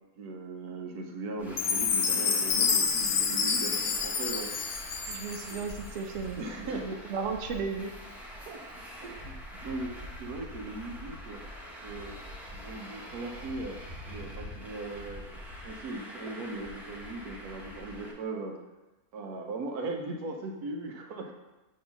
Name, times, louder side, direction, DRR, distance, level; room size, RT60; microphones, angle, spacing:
voice 1, 0.2-4.5 5.5-5.6 6.4-6.9 8.5-8.6 9.0-9.3 9.6-11.4 11.8-12.2 12.5-13.8 14.0-15.3 15.6-18.6 19.1-21.3, right 2 dB, 90° right, 2 dB, 1.4 m, -38 dB
Traffic noise roadway noise, 1.4-18.1, equal, ahead, 0.7 m, -44 dB
Chime, 1.6-5.8, left 6 dB, 60° left, 1.0 m, -28 dB
voice 2, 5.1-7.9, right 5 dB, 65° right, 4 dB, 0.9 m, -35 dB
6.3 x 3.2 x 5.7 m, 1.0 s
omnidirectional pair, 1.6 m